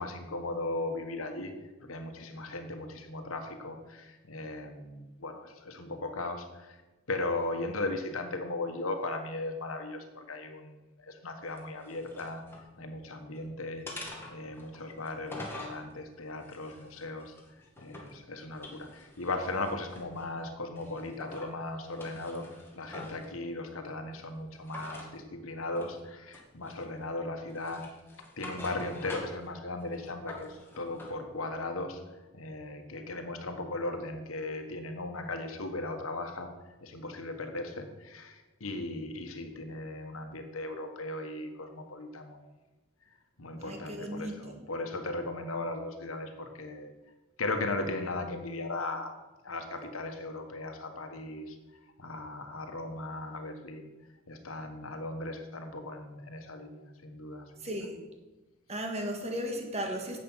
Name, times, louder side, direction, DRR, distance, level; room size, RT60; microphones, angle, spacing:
voice 1, 0.0-1.5 1.8-6.8 7.1-12.4 12.8-13.8 14.3-17.3 17.8-22.5 22.7-27.8 28.4-32.0 32.3-36.5 36.8-42.4 43.4-46.9 47.4-49.1 49.4-51.5 52.0-53.9 54.3-57.7, left 2 dB, 85° left, 5 dB, 1.4 m, -37 dB
sound 1, 11.5-12.7 13.1-13.4 13.9-15.8 16.4-18.2 18.5-20.3 20.8-21.5 21.9-23.3 24.7-25.1 25.8-26.0 26.3-27.0 27.5-29.5 29.8-31.1, left 1 dB, 10° left, 2.1 m, -46 dB
voice 2, 43.6-44.6 57.6-58.0 58.7-60.2, equal, 30° right, 3 dB, 1.7 m, -36 dB
10.5 x 7.8 x 5.7 m, 1.1 s
head